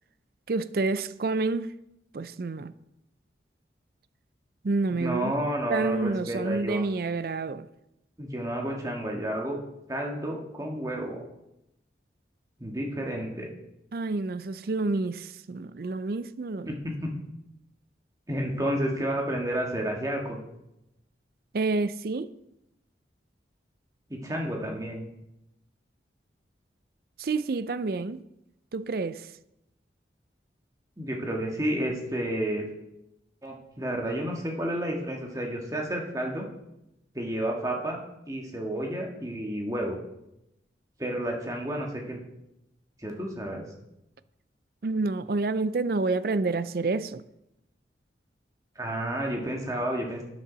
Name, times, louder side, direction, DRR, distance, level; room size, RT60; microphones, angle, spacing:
voice 1, 0.5-1.7 2.1-2.7 4.6-5.3 5.7-7.7 13.9-16.7 21.5-22.3 27.2-28.2 28.7-29.3 44.8-47.2, right 3 dB, 55° right, 0.4 m, -28 dB
voice 2, 4.9-6.8 8.2-9.6 9.9-11.2 12.6-13.5 16.6-16.7 17.0-17.1 18.3-20.4 24.1-25.0 31.0-32.6 33.4-36.5 37.1-38.0 38.3-40.0 41.0-42.2 43.0-43.6 48.7-50.2, right 1 dB, 20° right, 1.7 m, -31 dB
12.5 x 9.0 x 4.0 m
head